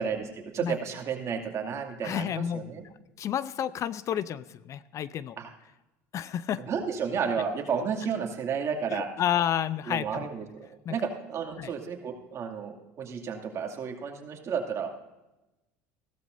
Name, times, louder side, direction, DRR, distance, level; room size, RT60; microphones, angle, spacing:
voice 1, 0.0-2.8 5.4-5.5 6.6-9.1 9.9-14.9, right 6 dB, 40° right, 2 dB, 2.5 m, -32 dB
voice 2, 2.0-2.6 3.2-5.4 6.1-6.6 8.9-10.3 10.9-11.0 11.6-11.7, left 10 dB, 45° left, 16 dB, 0.5 m, -30 dB
16.0 x 13.0 x 2.7 m, 0.97 s
supercardioid pair, 95°, 7 cm